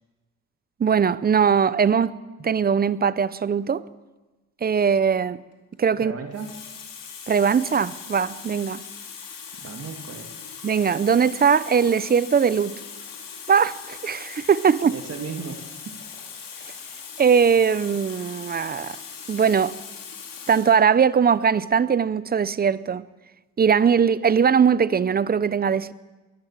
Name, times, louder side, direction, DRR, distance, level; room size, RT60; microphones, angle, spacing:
voice 1, 0.8-3.8 4.6-5.4 5.8-6.1 7.3-8.8 10.6-12.8 13.5-14.9 17.2-19.0 19.3-19.7 20.5-23.1 23.6-25.9, right 7 dB, 30° right, 0.7 m, -20 dB
Water tap faucet, 5.5-5.8 6.3-20.8 21.7-21.9, left 6 dB, 85° left, 4.1 m, -40 dB
voice 2, 6.0-6.6 9.6-10.3 14.8-16.0, right 5 dB, 45° right, 2.3 m, -35 dB
22.5 x 17.0 x 7.5 m
cardioid pair, 135°, 32 cm